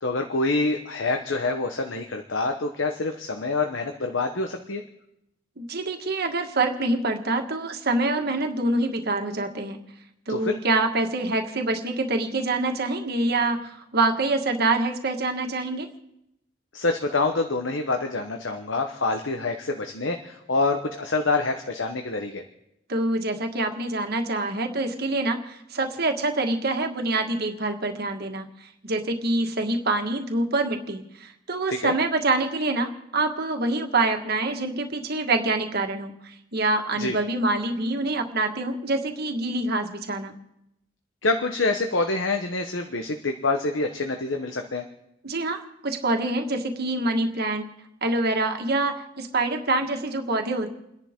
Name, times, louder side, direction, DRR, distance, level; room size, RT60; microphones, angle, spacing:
voice 1, 0.0-4.8 10.3-10.5 16.7-22.4 31.7-31.9 37.0-37.2 41.2-44.8, left 3 dB, 70° left, 5 dB, 1.1 m, -26 dB
voice 2, 5.6-9.8 10.3-15.9 22.9-28.5 28.8-40.3 45.2-47.7 48.0-50.7, right 2 dB, 55° right, 4 dB, 1.6 m, -26 dB
30.0 x 10.5 x 3.7 m, 0.84 s
head